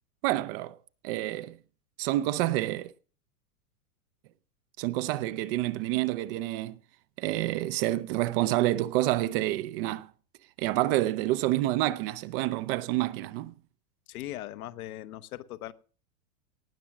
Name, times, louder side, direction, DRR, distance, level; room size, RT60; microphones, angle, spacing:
voice 1, 0.2-0.8 1.0-1.6 2.0-2.9 4.8-6.8 7.2-10.1 10.6-13.5, right 16 dB, 40° right, 0.6 m, -28 dB
voice 2, 14.1-15.7, left 14 dB, 70° left, 1.0 m, -39 dB
18.5 x 6.2 x 5.9 m
supercardioid pair, 140°, 45 cm